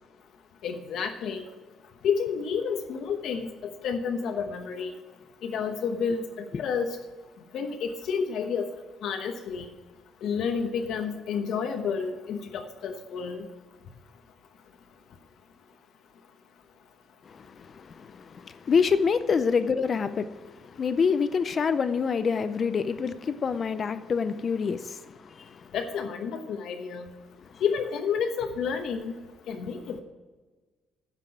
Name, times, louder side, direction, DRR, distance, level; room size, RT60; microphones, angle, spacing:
voice 1, 0.6-1.4 2.0-3.5 3.8-4.9 5.4-6.9 7.5-8.7 9.0-9.6 10.2-13.5 25.7-27.1 27.6-29.1 29.5-30.0, left 6 dB, 70° left, 1.0 m, -30 dB
voice 2, 17.3-25.7 27.4-27.6, left 5 dB, 35° left, 0.5 m, -27 dB
9.9 x 6.1 x 8.7 m
cardioid pair, 145°, 0 cm